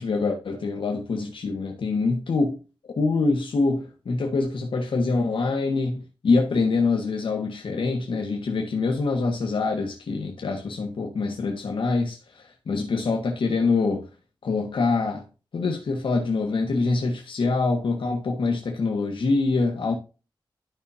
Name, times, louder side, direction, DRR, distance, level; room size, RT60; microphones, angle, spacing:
voice 1, 0.0-2.6 3.0-14.1 14.4-15.2 15.5-19.9, left 3 dB, 80° left, 1.4 m, -25 dB
12.5 x 5.6 x 2.7 m
wide cardioid pair, 145°, 9 cm